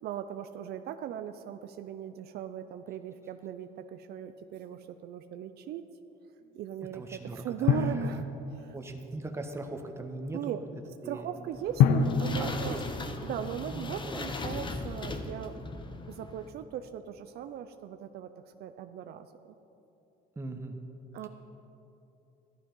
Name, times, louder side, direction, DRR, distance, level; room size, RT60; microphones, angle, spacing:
voice 1, 0.0-5.8 6.5-8.8 10.3-10.6 11.0-12.8 13.2-15.6 16.1-18.3 18.6-19.6 21.1-21.3, right 10 dB, 70° right, 9 dB, 0.6 m, -39 dB
voice 2, 6.9-7.8 8.7-10.6 11.0-11.3 12.4-12.8 13.6-14.2 20.3-20.8, right 2 dB, 15° right, 4 dB, 1.3 m, -39 dB
Drum, 7.7-9.2 11.8-14.0, left 6 dB, 85° left, 0.8 m, -28 dB
sound 1, 11.5-16.5, left 3 dB, 30° left, 1.0 m, -38 dB
13.5 x 12.0 x 5.5 m, 3.0 s
cardioid pair, 110°, 17 cm